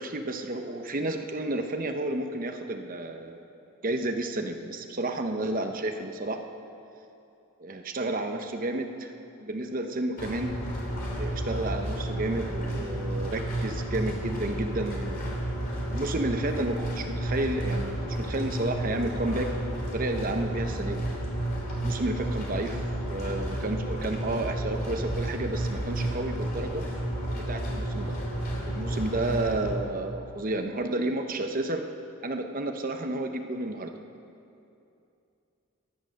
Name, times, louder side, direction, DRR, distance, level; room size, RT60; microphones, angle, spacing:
voice 1, 0.0-3.4 3.8-6.4 7.6-8.9 9.4-10.6 11.2-15.4 15.9-19.5 19.9-21.1 21.8-26.8 27.5-28.2 28.7-31.8 32.2-33.9, right 2 dB, 40° right, 6 dB, 0.8 m, -31 dB
sound 1, 10.2-29.7, right 1 dB, 40° left, 3.5 m, -31 dB
15.0 x 11.5 x 6.4 m, 2.7 s
head